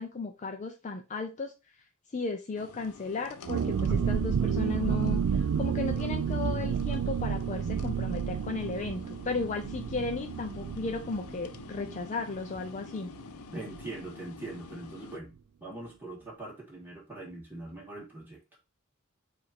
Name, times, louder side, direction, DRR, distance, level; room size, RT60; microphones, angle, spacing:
voice 1, 0.0-1.5 2.1-13.1, left 3 dB, 35° left, 4 dB, 0.5 m, -35 dB
sound 1, 2.6-15.2, left 5 dB, 90° left, 0.5 m, -48 dB
sound 2, 3.5-12.9 13.1-13.2 13.6-13.9, right 7 dB, 70° right, 0.3 m, -31 dB
voice 2, 13.5-15.3 15.6-18.4, right 2 dB, 10° right, -3 dB, 1.6 m, -42 dB
4.8 x 2.6 x 4.2 m, 0.27 s
head